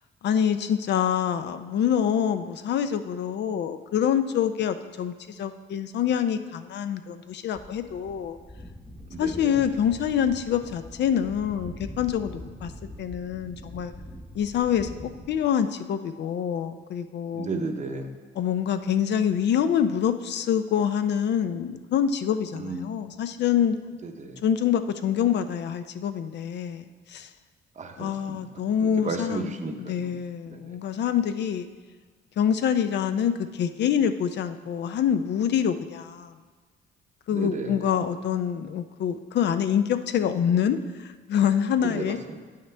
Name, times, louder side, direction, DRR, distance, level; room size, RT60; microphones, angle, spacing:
voice 1, 0.2-8.4 9.2-12.7 13.0-13.9 14.3-17.5 18.4-23.8 24.4-27.3 28.0-31.7 32.4-36.3 37.3-42.2, left 8 dB, 60° left, 10 dB, 0.4 m, -26 dB
sound 1, 7.5-15.4, equal, 25° left, 1.3 m, -43 dB
voice 2, 9.1-9.6 17.3-18.1 22.6-22.9 24.0-24.4 27.8-28.4 29.0-30.2 30.5-30.8 37.3-37.8 41.8-42.4, right 3 dB, 35° right, 6 dB, 0.7 m, -34 dB
8.4 x 5.7 x 3.3 m, 1.4 s
cardioid pair, 90°, 20 cm